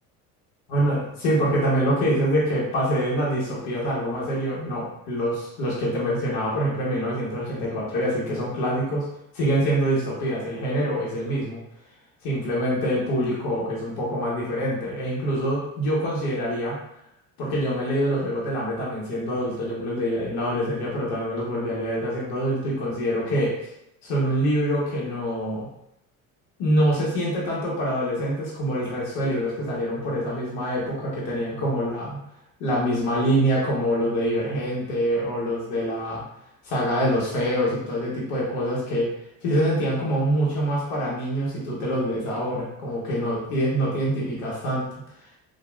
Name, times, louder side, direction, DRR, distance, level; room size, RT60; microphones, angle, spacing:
voice 1, 0.7-9.1 9.3-11.6 12.2-16.8 17.4-23.5 24.0-25.7 26.6-32.2 32.6-36.2 36.6-39.1 39.4-44.8, equal, 70° left, -5 dB, 0.9 m, -25 dB
2.8 x 2.2 x 2.2 m, 0.80 s
hypercardioid pair, 70°, 42 cm